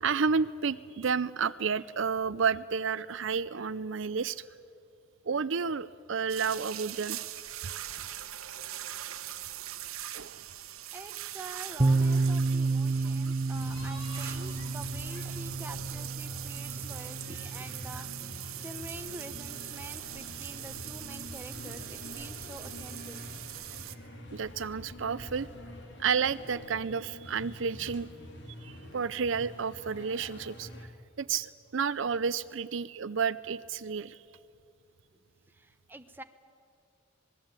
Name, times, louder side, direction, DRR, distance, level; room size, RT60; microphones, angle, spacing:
voice 1, 0.0-4.4 5.2-7.2 10.1-10.4 24.3-25.5 26.0-28.1 28.6-30.7 31.2-34.2, right 6 dB, 60° right, 15 dB, 0.5 m, -31 dB
sound 1, 6.3-24.0, right 13 dB, 90° right, 1.2 m, -42 dB
voice 2, 10.9-23.2 35.5-36.2, right 1 dB, 10° right, 7 dB, 1.0 m, -47 dB
sound 2, 11.8-19.5, right 3 dB, 30° right, 0.7 m, -31 dB
sound 3, 13.5-30.9, left 1 dB, 55° left, 3.3 m, -46 dB
26.0 x 20.0 x 9.0 m, 2.5 s
head